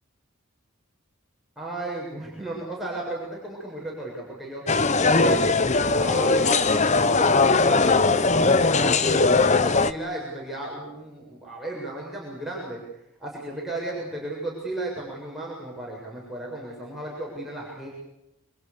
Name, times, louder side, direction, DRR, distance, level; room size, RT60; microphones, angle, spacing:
voice 1, 1.6-4.6 5.2-5.5 6.0-6.6 7.0-12.8 13.2-17.9, right 2 dB, ahead, -4 dB, 7.4 m, -34 dB
sound 1, 4.7-9.9, left 3 dB, 30° left, 1.0 m, -20 dB
29.0 x 26.0 x 6.9 m, 0.88 s
head